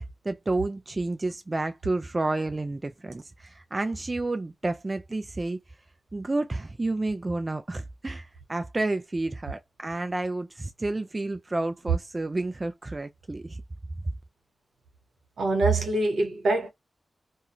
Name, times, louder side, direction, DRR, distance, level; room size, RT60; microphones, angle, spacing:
voice 1, 0.0-5.6 6.1-13.6, right 2 dB, 30° right, 0.3 m, -30 dB
voice 2, 15.4-16.7, right 2 dB, 85° right, 1.0 m, -24 dB
2.4 x 2.2 x 2.8 m
cardioid pair, 65°, 0 cm